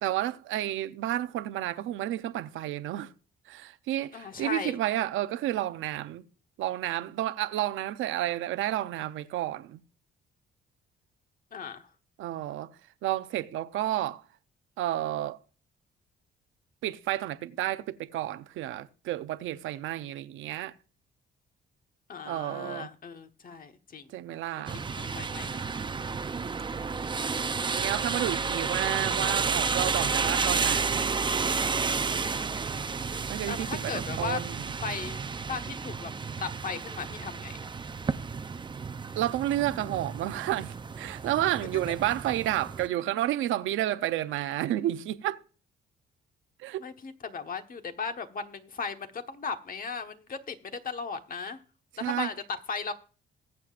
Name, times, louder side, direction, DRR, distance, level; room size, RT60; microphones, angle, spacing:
voice 1, 0.0-3.1 3.5-6.2 6.6-9.8 12.2-12.7 13.0-14.2 14.8-15.4 16.8-20.7 22.2-22.9 24.1-24.8 27.7-31.3 33.1-34.7 39.2-45.4 46.6-46.9 51.9-52.3, right 13 dB, 85° right, 0.7 m, -31 dB
voice 2, 4.1-4.7 11.5-11.9 22.1-24.1 24.6-25.6 33.4-34.4 34.8-35.2 35.5-36.1 36.4-37.7 41.7-41.8 46.8-51.6 52.0-52.3 52.7-52.9, left 5 dB, 45° left, 1.3 m, -37 dB
sound 1, 24.7-42.9, right 5 dB, 25° right, 0.5 m, -31 dB
21.0 x 7.7 x 2.5 m
cardioid pair, 90°, 20 cm